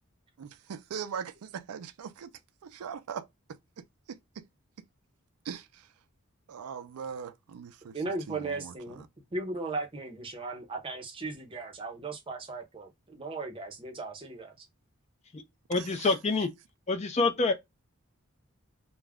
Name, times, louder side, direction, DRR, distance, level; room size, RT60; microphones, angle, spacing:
voice 1, 0.4-2.3 2.7-3.3 3.8-4.4 5.5-5.6 6.5-7.9 8.3-8.7, right 7 dB, 90° right, 0.4 m, -40 dB
voice 2, 7.9-9.0 9.3-14.7, right 3 dB, 25° right, 0.6 m, -37 dB
voice 3, 15.7-16.5 16.9-17.5, left 3 dB, 30° left, 0.4 m, -26 dB
2.3 x 2.1 x 3.3 m
head